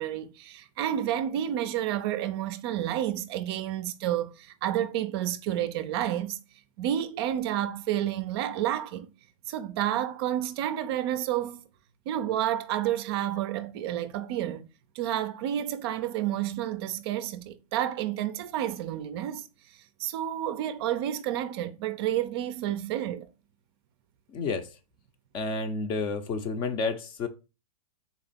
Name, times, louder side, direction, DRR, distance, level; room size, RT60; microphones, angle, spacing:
voice 1, 0.0-6.4 6.8-9.1 9.5-11.6 12.1-14.7 15.0-19.5 20.0-23.3, right 11 dB, 45° right, 0.5 m, -30 dB
voice 2, 24.3-24.7 25.3-27.3, left 4 dB, 30° left, 0.6 m, -30 dB
4.1 x 2.8 x 4.1 m
hypercardioid pair, 125°, 18 cm